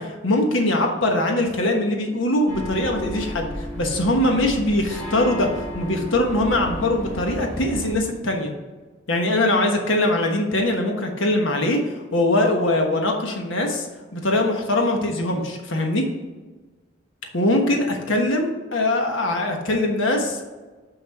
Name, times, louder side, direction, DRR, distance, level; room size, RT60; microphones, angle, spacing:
voice 1, 0.0-8.5 9.1-11.8 12.1-13.9 14.1-16.1 17.3-20.4, left 1 dB, 85° left, 2 dB, 1.2 m, -22 dB
sound 1, 2.5-8.0, equal, 10° left, 2.1 m, -33 dB
6.1 x 5.9 x 4.2 m, 1.3 s
head